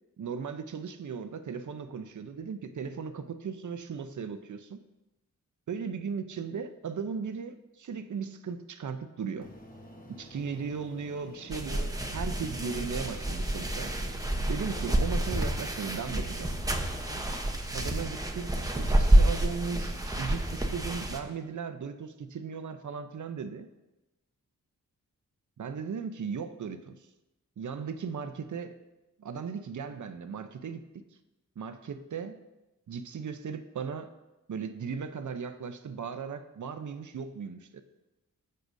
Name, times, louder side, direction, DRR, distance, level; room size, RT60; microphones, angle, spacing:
voice 1, 0.2-4.8 5.7-9.5 10.2-13.9 14.5-16.5 17.7-23.7 25.6-27.0 27.6-28.8 29.2-30.8 31.6-32.4 32.9-34.1 34.5-37.8, right 6 dB, 60° right, 9 dB, 0.7 m, -37 dB
sound 1, 9.4-17.4, equal, 25° left, 1.3 m, -50 dB
sound 2, 11.5-21.2, right 1 dB, 10° right, 1.0 m, -28 dB
16.0 x 6.7 x 2.7 m, 1.0 s
wide cardioid pair, 85°, 33 cm